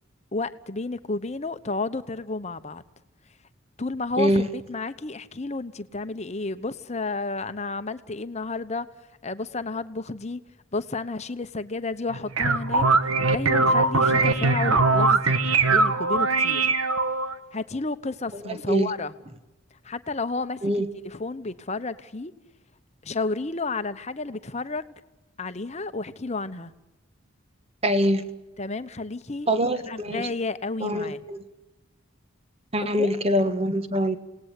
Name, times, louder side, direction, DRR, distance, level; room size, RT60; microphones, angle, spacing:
voice 1, 0.3-2.8 3.8-8.9 9.2-10.4 10.7-12.9 13.3-15.4 15.6-16.7 17.5-19.1 19.8-22.3 23.0-24.9 25.4-26.7 28.6-29.5 29.9-31.2 33.0-33.1, left 3 dB, 30° left, 11 dB, 1.0 m, -31 dB
voice 2, 4.2-4.5 18.3-18.9 20.6-20.9 27.8-28.2 29.5-30.3 30.8-31.4 32.7-34.2, equal, 30° right, 10 dB, 1.5 m, -24 dB
sound 1, 12.1-17.4, right 3 dB, 85° right, 1.7 m, -21 dB
28.5 x 18.5 x 8.4 m, 1.0 s
head